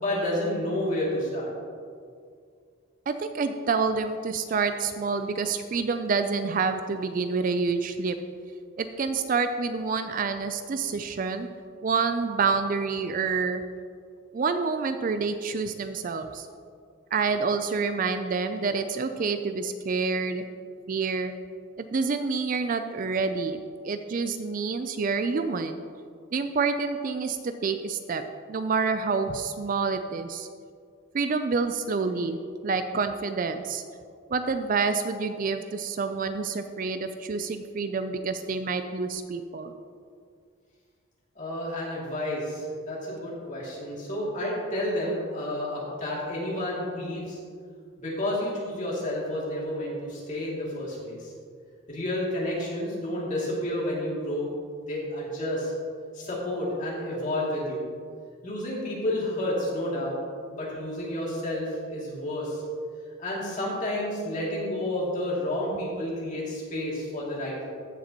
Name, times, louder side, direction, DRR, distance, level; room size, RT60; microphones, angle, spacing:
voice 1, 0.0-1.5 41.4-47.4 48.0-51.3 51.9-54.5 54.9-55.7 56.1-57.9 58.4-60.2 60.5-62.6 63.2-67.7, left 1 dB, 35° left, -6 dB, 2.5 m, -30 dB
voice 2, 3.1-8.2 8.8-11.5 11.8-13.6 14.3-16.5 17.1-20.4 20.9-21.4 21.8-25.8 26.3-28.2 28.5-30.5 31.1-32.4 32.6-33.8 34.3-39.7, right 4 dB, 40° right, 9 dB, 0.3 m, -28 dB
15.0 x 6.9 x 2.9 m, 2.2 s
head